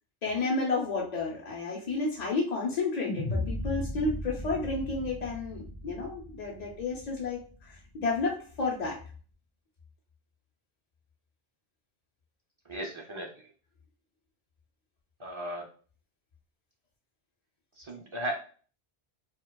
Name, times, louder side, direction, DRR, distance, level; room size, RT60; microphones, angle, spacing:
voice 1, 0.2-9.0, left 3 dB, 50° left, -2 dB, 0.6 m, -31 dB
sound 1, 3.1-7.4, left 1 dB, 25° left, 0.9 m, -36 dB
voice 2, 12.7-13.5 15.2-15.7 17.8-18.3, equal, 35° right, -1 dB, 0.5 m, -36 dB
4.4 x 2.3 x 2.2 m, 0.41 s
omnidirectional pair, 1.1 m